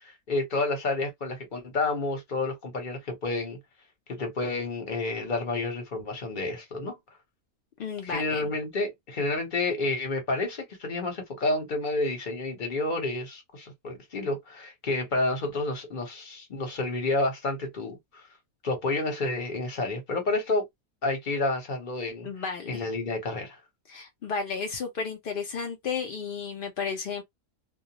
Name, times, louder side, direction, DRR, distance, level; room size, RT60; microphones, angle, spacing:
voice 1, 0.0-3.6 4.1-7.0 8.0-18.3 18.6-20.6 21.0-22.3 22.7-23.6, left 2 dB, 40° left, 0.9 m, -30 dB
voice 2, 7.8-8.5 22.2-22.8 23.9-27.2, left 5 dB, 60° left, 0.5 m, -33 dB
2.3 x 2.2 x 2.8 m
omnidirectional pair, 1.5 m